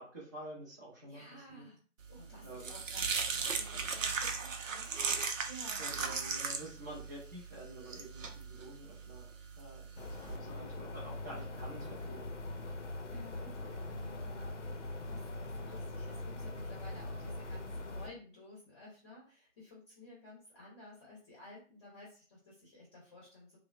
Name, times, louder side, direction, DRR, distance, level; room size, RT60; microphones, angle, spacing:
voice 1, 0.0-1.6 2.4-2.7 5.8-9.3 9.6-12.3, right 1 dB, 15° right, -6 dB, 0.5 m, -48 dB
voice 2, 1.1-1.8 2.1-6.2 10.4-10.8 13.0-23.6, left 1 dB, 20° left, -6 dB, 0.7 m, -54 dB
sound 1, 2.1-10.4, right 5 dB, 80° right, 0.6 m, -37 dB
sound 2, 10.0-18.1, left 2 dB, 65° left, 0.6 m, -42 dB
2.9 x 2.0 x 2.4 m, 0.38 s
figure-of-eight pair, 145°, 39 cm